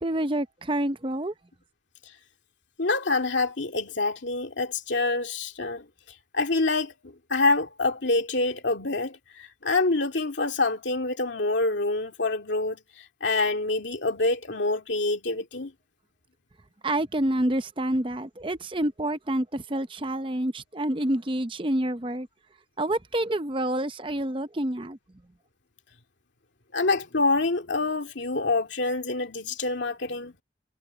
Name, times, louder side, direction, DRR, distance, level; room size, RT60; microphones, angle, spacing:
voice 1, 0.0-1.3 16.8-22.3 22.8-25.0, right 1 dB, 25° right, 0.8 m, -28 dB
voice 2, 2.8-5.8 6.3-15.7 26.7-30.3, left 3 dB, 80° left, 2.2 m, -26 dB
head